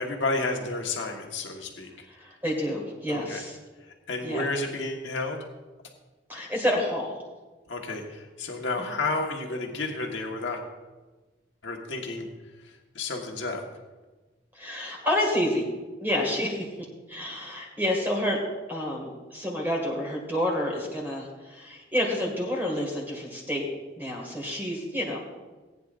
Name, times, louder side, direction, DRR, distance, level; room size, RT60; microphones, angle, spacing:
voice 1, 0.0-1.9 3.1-3.4 3.8-5.4 7.7-10.6 11.6-12.3 12.6-13.6, left 3 dB, 85° left, 1 dB, 1.5 m, -31 dB
voice 2, 2.1-3.6 4.2-4.4 6.3-7.2 8.8-8.9 14.6-15.7 16.0-16.7 17.1-18.4 18.7-23.7 24.0-25.2, left 1 dB, 10° right, -1 dB, 2.0 m, -29 dB
18.5 x 9.5 x 2.5 m, 1.2 s
head